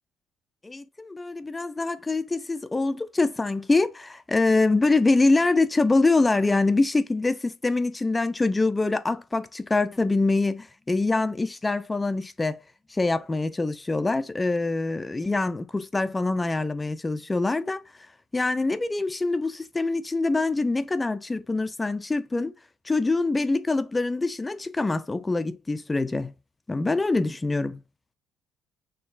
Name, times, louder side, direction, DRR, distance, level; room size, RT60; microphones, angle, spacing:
voice 1, 0.6-12.6 12.9-17.8 18.3-22.5 22.8-26.3 26.7-27.8, left 3 dB, 15° left, 0.4 m, -24 dB
4.4 x 3.1 x 2.4 m
cardioid pair, 95°, 0 cm